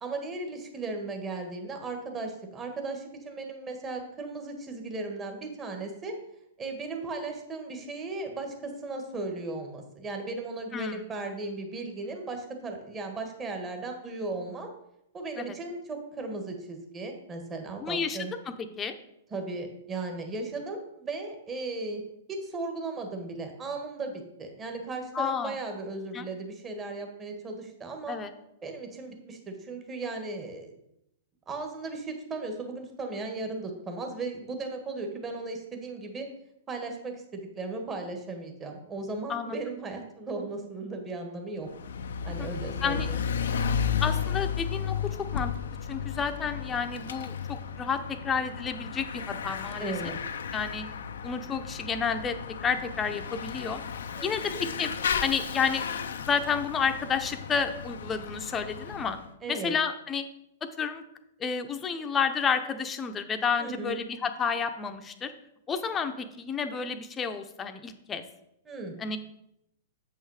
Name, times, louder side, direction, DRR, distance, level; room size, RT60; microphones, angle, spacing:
voice 1, 0.0-6.1 6.6-14.7 15.1-18.3 19.3-22.0 22.3-28.2 28.6-30.7 31.5-36.3 36.7-41.7 42.2-43.2 49.8-50.2 54.1-54.6 59.4-59.7 63.6-64.0 68.6-68.9, right 3 dB, 20° right, 4 dB, 1.7 m, -36 dB
voice 2, 17.8-18.2 18.5-18.9 25.1-25.5 26.1-26.2 28.1-28.3 39.3-39.6 42.4-42.5 42.8-43.1 44.0-45.5 45.9-50.1 50.5-50.8 51.2-53.8 54.2-54.9 55.2-55.8 56.2-59.2 59.5-60.2 60.8-61.0 61.4-65.3 65.7-68.2 69.0-69.2, left 6 dB, 20° left, 7 dB, 0.8 m, -30 dB
Bicycle / Mechanisms, 41.7-59.3, left 7 dB, 75° left, 0.6 m, -34 dB
7.9 x 5.6 x 4.9 m, 0.79 s
hypercardioid pair, 120°, 0 cm